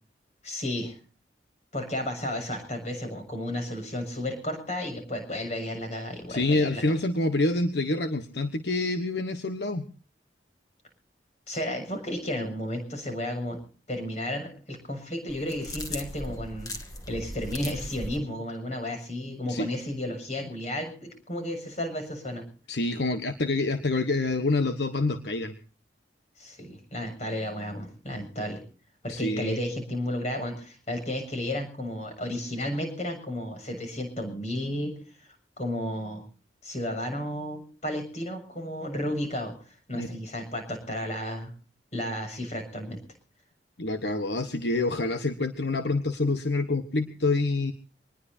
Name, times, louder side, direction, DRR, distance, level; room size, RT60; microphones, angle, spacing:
voice 1, 0.4-1.0 1.7-6.8 11.5-13.6 13.9-16.7 17.1-22.4 26.4-28.6 29.0-34.9 35.2-35.3 35.6-36.2 36.6-41.5 41.9-43.0, left 1 dB, 40° left, 6 dB, 6.9 m, -33 dB
voice 2, 6.3-9.8 19.5-19.7 22.7-25.5 29.1-29.6 39.9-40.1 43.8-47.7, left 2 dB, 70° left, 8 dB, 1.2 m, -27 dB
sound 1, 15.3-18.2, left 1 dB, 20° left, 2.3 m, -38 dB
25.0 x 20.0 x 2.7 m, 0.41 s
head